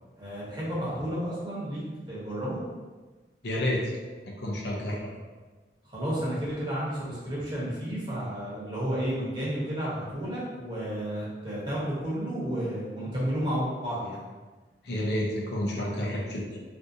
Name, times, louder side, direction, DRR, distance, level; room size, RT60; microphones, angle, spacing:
voice 1, 0.2-1.8 2.1-2.6 5.8-14.2, equal, 25° right, -8 dB, 1.0 m, -32 dB
voice 2, 3.4-3.9 4.3-5.1 14.8-16.6, left 1 dB, 65° left, -3 dB, 0.6 m, -30 dB
3.7 x 2.7 x 2.6 m, 1.3 s
head